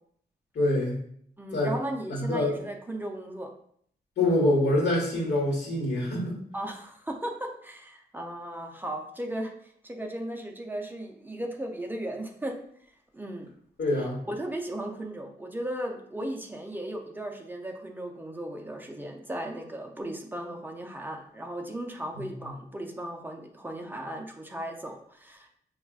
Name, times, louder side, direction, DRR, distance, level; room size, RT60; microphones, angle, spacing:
voice 1, 0.5-1.0 1.5-1.7 2.1-2.5 4.2-6.4 13.8-14.2 22.2-22.3, left 1 dB, 85° left, -3 dB, 1.1 m, -25 dB
voice 2, 1.4-3.5 6.5-12.6 13.1-13.5 14.0-25.5, right 1 dB, 10° right, 2 dB, 0.4 m, -36 dB
5.9 x 2.3 x 2.3 m, 0.65 s
wide cardioid pair, 165°, 17 cm